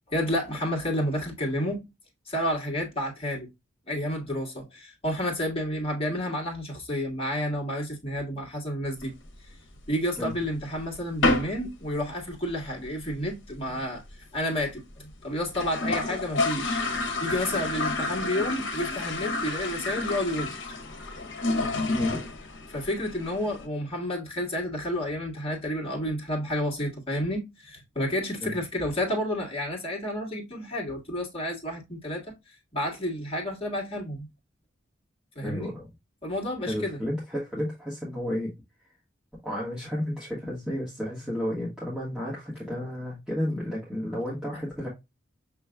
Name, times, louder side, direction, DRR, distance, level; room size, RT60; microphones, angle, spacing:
voice 1, 0.1-1.8 2.3-3.5 3.9-9.1 9.9-14.0 14.3-20.6 22.7-32.3 32.7-34.3 35.3-35.7 36.2-37.0, equal, 30° left, 1.7 m, -30 dB
sound 1, 9.0-10.0 10.4-10.5 10.8-10.9 11.2-11.7 11.9-12.0 12.3-12.4 12.7-13.1 13.5-13.6 13.7-13.8 14.1-14.2 14.7-14.8 15.1-15.2 15.4-23.7, left 2 dB, 65° left, 1.0 m, -30 dB
voice 2, 35.4-35.9 36.7-38.5 39.4-44.9, left 1 dB, 5° right, 1.4 m, -32 dB
6.1 x 3.1 x 2.2 m
head